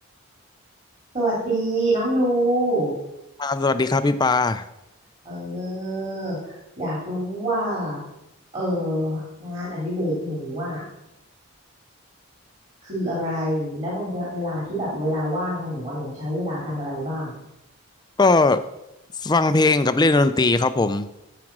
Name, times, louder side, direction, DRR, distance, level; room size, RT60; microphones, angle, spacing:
voice 1, 1.1-2.9 5.2-8.0 8.5-10.8 12.8-17.4, right 1 dB, 35° right, -6 dB, 3.2 m, -26 dB
voice 2, 3.4-4.6 18.2-18.6 19.2-21.1, left 3 dB, 20° left, 12 dB, 0.4 m, -19 dB
14.5 x 5.0 x 6.1 m, 0.90 s
head